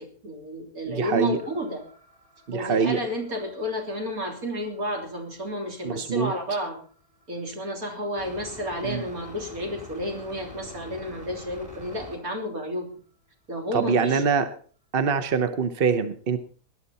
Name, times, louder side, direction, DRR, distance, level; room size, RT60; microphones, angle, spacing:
voice 1, 0.0-1.8 2.5-6.8 7.3-12.9 13.5-14.2, equal, 60° right, 2 dB, 3.7 m, -31 dB
voice 2, 0.9-1.4 2.5-3.0 5.8-6.3 8.8-9.0 13.7-14.5 14.9-16.4, right 5 dB, 40° right, 10 dB, 0.9 m, -24 dB
sound 1, 1.1-12.2, left 1 dB, 25° right, 4.6 m, -48 dB
19.5 x 12.0 x 4.2 m, 0.43 s
omnidirectional pair, 1.7 m